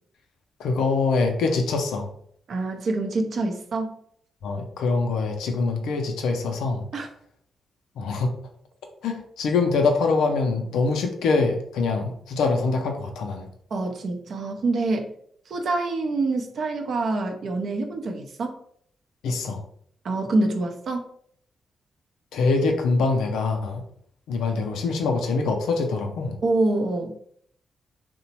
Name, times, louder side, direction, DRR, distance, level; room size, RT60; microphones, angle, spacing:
voice 1, 0.6-2.1 4.4-6.8 8.0-8.3 9.0-13.5 19.2-19.6 22.3-23.8 24.3-26.4, left 3 dB, 80° left, 4 dB, 0.4 m, -24 dB
voice 2, 2.5-4.0 6.9-7.1 13.7-15.1 15.5-18.6 20.0-21.1 26.4-27.2, right 2 dB, 65° right, 4 dB, 0.5 m, -26 dB
2.9 x 2.0 x 2.8 m, 0.64 s
supercardioid pair, 45°, 0 cm